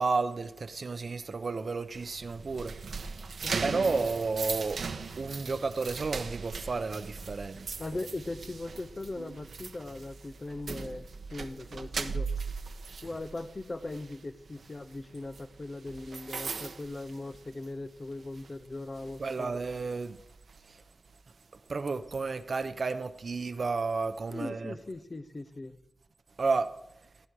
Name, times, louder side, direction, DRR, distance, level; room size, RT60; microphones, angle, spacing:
voice 1, 0.0-2.7 3.6-4.8 5.2-7.8 19.2-20.2 20.7-20.8 21.7-24.7 26.4-26.7, right 4 dB, 55° right, 1.0 m, -31 dB
sound 1, 1.9-17.9 18.2-18.5 18.9-20.6, right 5 dB, 75° right, 1.2 m, -39 dB
voice 2, 3.4-4.1 7.8-12.3 13.0-19.5 24.3-25.8, left 2 dB, 35° left, 1.1 m, -39 dB
18.5 x 14.5 x 4.9 m
wide cardioid pair, 105°, 0 cm